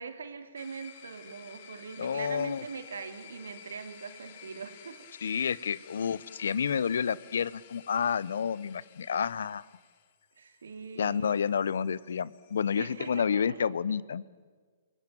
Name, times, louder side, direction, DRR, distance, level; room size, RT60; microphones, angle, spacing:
voice 1, 0.0-5.1 10.4-11.4 12.8-13.6, right 5 dB, 75° right, 7 dB, 3.0 m, -42 dB
sound 1, 0.6-13.2, left 9 dB, 50° left, 2.6 m, -53 dB
voice 2, 2.0-2.6 5.2-9.6 11.0-14.2, left 7 dB, 70° left, 21 dB, 0.8 m, -30 dB
29.0 x 19.0 x 9.0 m, 1.6 s
figure-of-eight pair, 120°, 0 cm